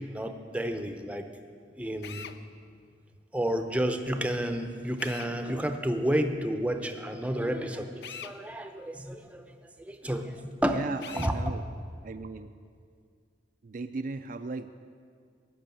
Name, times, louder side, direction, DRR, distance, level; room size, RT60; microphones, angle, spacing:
voice 1, 0.1-1.3 1.8-2.3 3.3-9.4 9.9-10.8 11.2-11.3, right 1 dB, 10° right, 6 dB, 0.6 m, -30 dB
Drill, 2.0-2.4 5.0-5.3 8.0-8.4 11.0-11.4, left 8 dB, 70° left, 0.5 m, -42 dB
voice 2, 10.7-11.6 12.0-12.5 13.6-14.8, right 3 dB, 50° right, 9 dB, 0.4 m, -37 dB
14.0 x 6.2 x 9.0 m, 2.2 s
head